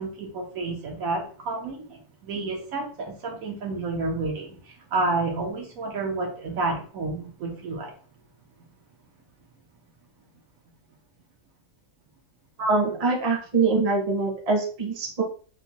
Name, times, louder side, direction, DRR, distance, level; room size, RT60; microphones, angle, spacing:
voice 1, 0.0-4.6 4.9-7.9, right 3 dB, 80° right, 1 dB, 1.3 m, -30 dB
voice 2, 12.6-15.2, right 3 dB, 35° right, 0 dB, 0.7 m, -24 dB
3.7 x 2.6 x 2.9 m, 0.42 s
omnidirectional pair, 1.4 m